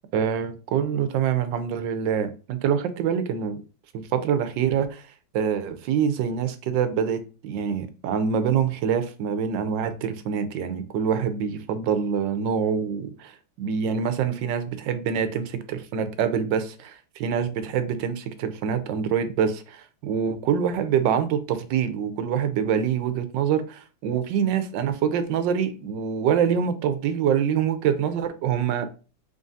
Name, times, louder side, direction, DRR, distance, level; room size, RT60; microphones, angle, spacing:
voice 1, 0.1-3.6 3.9-5.0 5.3-13.3 13.6-28.9, right 7 dB, 90° right, 1.3 m, -25 dB
3.8 x 3.7 x 2.6 m
omnidirectional pair, 1.9 m